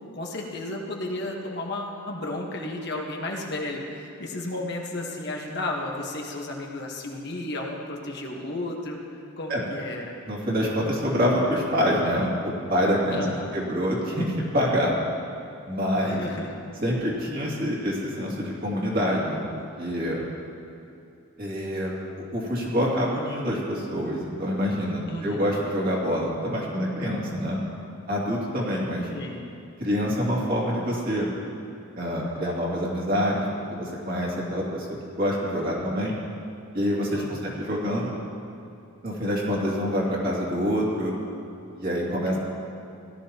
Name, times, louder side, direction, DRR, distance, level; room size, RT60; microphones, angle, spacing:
voice 1, 0.1-10.2 13.1-13.6 16.0-16.5 25.1-25.4 29.1-29.4 37.1-37.4 42.3-42.4, left 2 dB, 50° left, -1 dB, 1.3 m, -33 dB
voice 2, 10.3-13.3 13.5-14.9 15.7-16.2 16.8-20.2 21.4-21.9 22.3-27.6 28.1-29.1 29.8-31.3 32.0-34.9 35.2-36.1 36.7-38.1 39.0-41.1 41.7-42.4, equal, 45° right, -5 dB, 2.5 m, -26 dB
17.5 x 12.5 x 2.9 m, 2.7 s
head